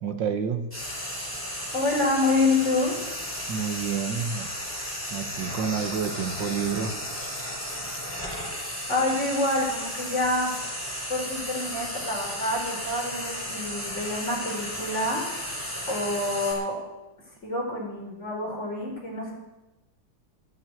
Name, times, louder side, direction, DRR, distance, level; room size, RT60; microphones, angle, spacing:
voice 1, 0.0-0.7 3.5-4.5 5.1-7.0, right 6 dB, 70° right, 8 dB, 2.0 m, -29 dB
Frying (food), 0.7-16.5, equal, 5° left, 5.9 m, -34 dB
voice 2, 1.7-3.0 8.9-10.5 11.1-15.2 15.9-16.8 17.4-19.3, left 2 dB, 35° left, -2 dB, 4.9 m, -27 dB
14.5 x 9.0 x 9.1 m, 1.0 s
omnidirectional pair, 2.1 m